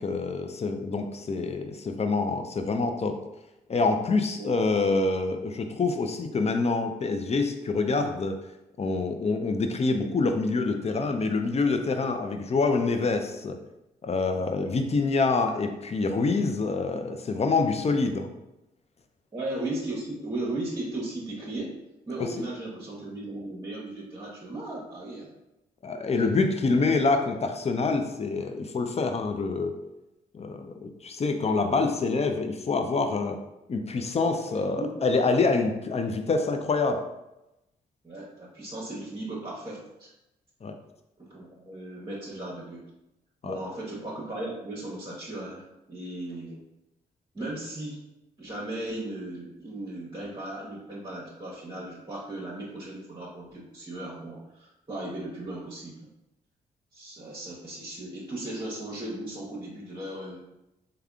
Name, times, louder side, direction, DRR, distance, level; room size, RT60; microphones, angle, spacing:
voice 1, 0.0-3.2 3.7-8.4 8.8-13.6 14.0-18.3 25.8-29.7 30.3-33.4 33.7-37.0 40.6-40.7 43.4-43.6, left 3 dB, 35° left, 6 dB, 0.5 m, -26 dB
voice 2, 19.3-21.7 22.1-25.3 26.1-26.3 34.5-35.0 35.7-35.8 38.0-40.1 41.2-42.9 43.4-45.6 45.9-46.6 47.3-48.0 48.4-56.1 56.9-60.4, right 1 dB, 25° right, -5 dB, 1.1 m, -36 dB
3.4 x 2.2 x 3.5 m, 0.91 s
hypercardioid pair, 45°, 19 cm